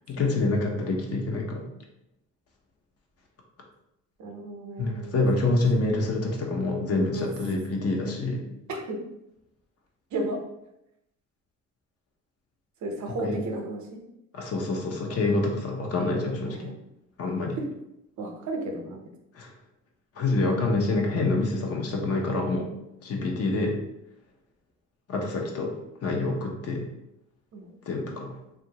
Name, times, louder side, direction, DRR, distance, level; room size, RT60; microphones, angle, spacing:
voice 1, 0.1-1.7 4.8-8.5 13.1-13.4 14.3-16.7 17.2-17.6 19.3-19.5 20.1-22.7 23.0-23.8 25.1-25.7 26.0-26.9 27.9-28.4, left 2 dB, 50° left, 1 dB, 0.7 m, -27 dB
voice 2, 4.2-5.1 7.1-7.4 8.7-9.0 10.1-10.4 12.8-14.0 16.4-16.7 18.2-19.0 27.5-27.7, right 2 dB, 70° right, 2 dB, 0.7 m, -33 dB
3.0 x 2.5 x 2.8 m, 0.85 s
cardioid pair, 90°, 30 cm